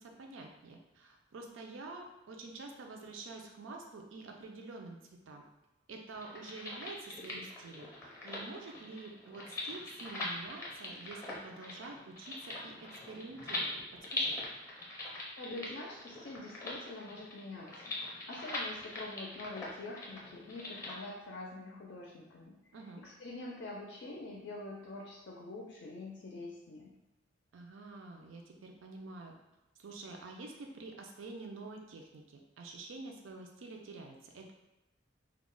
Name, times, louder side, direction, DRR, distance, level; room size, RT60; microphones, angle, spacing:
voice 1, 0.0-5.0 5.3-5.4 5.9-7.9 8.2-13.8 14.1-14.4 22.7-23.0 27.5-29.3 29.8-34.5, right 3 dB, 90° right, 2 dB, 0.4 m, -48 dB
sound 1, 6.2-20.9, left 2 dB, 15° left, 0.6 m, -42 dB
voice 2, 15.4-22.6 23.0-26.9, left 2 dB, 65° left, -2 dB, 0.4 m, -45 dB
2.3 x 2.0 x 3.7 m, 0.97 s
head